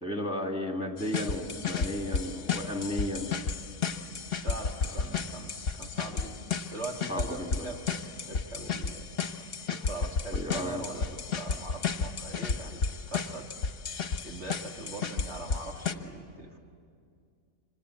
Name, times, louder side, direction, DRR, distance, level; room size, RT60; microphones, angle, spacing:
voice 1, 0.0-3.3 4.9-5.2 7.1-7.7 10.3-10.8, left 1 dB, 10° left, 3 dB, 2.1 m, -34 dB
sound 1, 1.0-15.9, left 5 dB, 45° left, 1.3 m, -33 dB
voice 2, 4.4-9.1 9.7-13.5 14.2-16.6, right 2 dB, 50° right, 1 dB, 2.1 m, -41 dB
26.5 x 25.5 x 8.3 m, 2.3 s
omnidirectional pair, 1.5 m